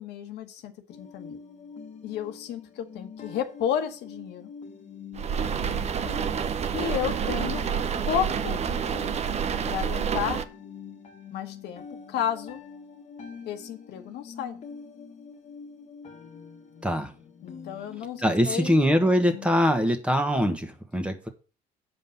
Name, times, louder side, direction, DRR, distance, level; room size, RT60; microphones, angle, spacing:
voice 1, 0.0-1.4 2.0-4.5 6.7-7.6 8.1-8.6 9.7-10.4 11.3-12.6 13.5-14.6 17.4-18.9, left 9 dB, 80° left, 6 dB, 1.3 m, -32 dB
sound 1, 0.9-19.7, left 5 dB, 40° left, 1.6 m, -45 dB
sound 2, 5.1-10.4, right 7 dB, 40° right, 0.7 m, -28 dB
voice 2, 18.2-21.3, equal, 5° right, 6 dB, 1.5 m, -23 dB
7.6 x 5.2 x 7.2 m, 0.35 s
cardioid pair, 110°, 17 cm